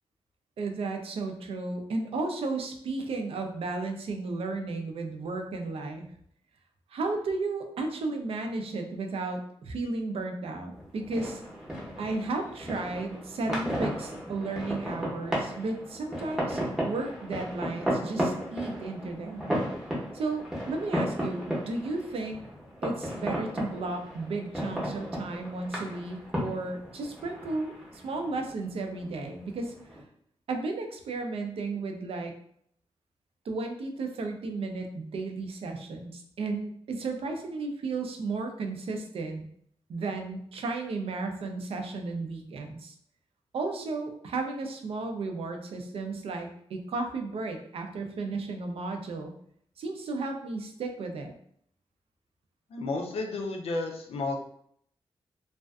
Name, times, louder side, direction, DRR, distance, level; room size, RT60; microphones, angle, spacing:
voice 1, 0.6-6.1 6.9-11.4 12.0-19.5 20.1-22.4 22.8-29.7 30.5-32.3 33.5-39.5 39.9-42.9 43.5-49.3 49.8-51.3, right 3 dB, 70° right, 4 dB, 0.4 m, -34 dB
sound 1, 10.7-30.0, equal, 5° right, 0.7 m, -35 dB
voice 2, 52.7-54.4, left 3 dB, 85° left, 3 dB, 0.4 m, -32 dB
2.4 x 2.3 x 2.2 m, 0.67 s
wide cardioid pair, 115°, 10 cm